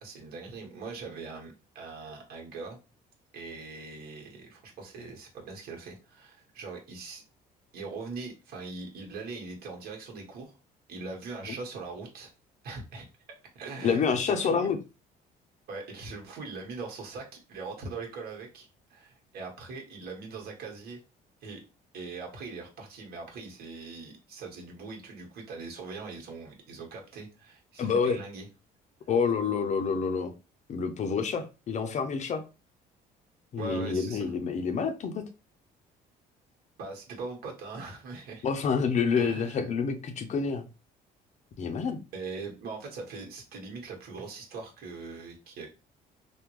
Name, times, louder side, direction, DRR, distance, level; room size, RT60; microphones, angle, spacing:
voice 1, 0.0-2.8 3.3-7.2 7.7-10.5 10.9-12.3 12.6-13.1 13.5-14.7 15.7-21.0 21.4-21.6 21.9-28.5 33.6-34.3 36.8-38.5 39.1-39.6 42.1-45.7, right 4 dB, 65° right, 1 dB, 1.3 m, -41 dB
voice 2, 13.8-14.8 27.8-28.2 29.1-30.3 30.7-32.4 33.5-35.2 38.4-40.6 41.6-42.0, left 5 dB, 45° left, 8 dB, 0.5 m, -28 dB
3.5 x 2.1 x 3.1 m, 0.30 s
cardioid pair, 110°, 17 cm